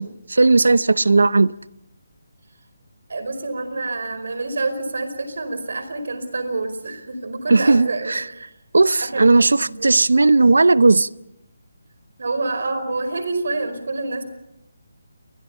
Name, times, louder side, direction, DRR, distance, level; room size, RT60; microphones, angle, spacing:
voice 1, 0.0-1.5 7.5-8.2 8.7-11.1, right 3 dB, 90° right, 0.8 m, -16 dB
voice 2, 3.1-8.5 9.0-9.9 12.2-14.2, right 3 dB, 75° right, 5.0 m, -27 dB
29.5 x 23.0 x 5.6 m
hypercardioid pair, 160°, 0 cm